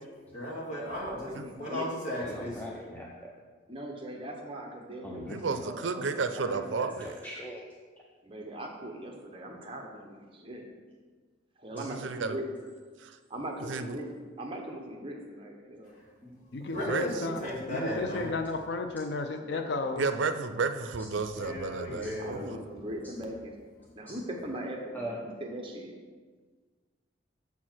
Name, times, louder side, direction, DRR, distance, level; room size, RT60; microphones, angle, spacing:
voice 1, 0.3-2.5 16.2-16.3 16.6-18.3 21.3-22.5, left 1 dB, 40° left, -6 dB, 2.2 m, -36 dB
voice 2, 1.0-1.8 3.7-6.9 8.2-10.7 11.6-12.5 13.3-14.1 14.4-15.9 16.7-17.0 19.4-19.8 22.2-23.5 24.0-25.9, right 1 dB, 25° right, 2 dB, 0.8 m, -40 dB
voice 3, 2.2-3.3 5.0-5.7 6.3-7.6 22.0-22.1 24.1-24.2 24.9-25.2, equal, 10° left, -3 dB, 0.5 m, -41 dB
voice 4, 5.3-7.1 11.8-12.4 13.0-13.2 13.7-14.0 16.8-17.3 20.0-22.4, right 4 dB, 75° right, 9 dB, 0.5 m, -32 dB
voice 5, 16.5-17.4 17.7-20.0, left 3 dB, 60° left, 6 dB, 0.4 m, -33 dB
7.1 x 4.5 x 6.1 m, 1.5 s
head